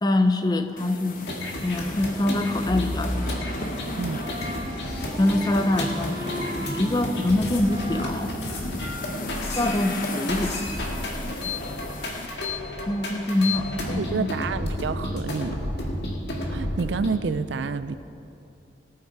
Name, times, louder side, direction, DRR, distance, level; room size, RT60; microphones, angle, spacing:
voice 1, 0.0-1.3 1.6-3.4 5.2-8.4 9.6-10.6 12.9-14.3, left 1 dB, 25° left, 7 dB, 0.6 m, -25 dB
sound 1, 0.8-12.3, left 2 dB, 50° left, 0.9 m, -36 dB
sound 2, 1.1-17.1, left 1 dB, 70° left, 2.0 m, -31 dB
Wind instrument woodwind instrument, 2.9-9.5, equal, 25° right, 1.0 m, -38 dB
voice 2, 13.9-15.6 16.5-17.9, right 5 dB, 80° right, 13 dB, 0.4 m, -28 dB
18.0 x 9.0 x 4.6 m, 2.7 s
head